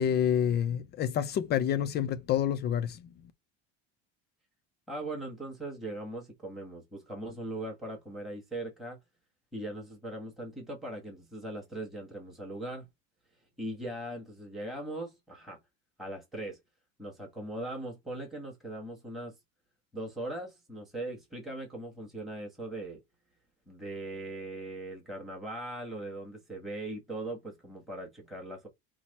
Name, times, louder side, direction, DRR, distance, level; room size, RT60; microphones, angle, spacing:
voice 1, 0.0-3.1, left 9 dB, 35° left, 0.4 m, -28 dB
voice 2, 4.9-9.0 9.5-12.9 13.3-15.6 16.0-16.6 17.0-19.4 19.9-23.0 23.7-28.7, right 1 dB, ahead, 1.4 m, -40 dB
5.8 x 2.0 x 4.2 m
cardioid pair, 155°, 31 cm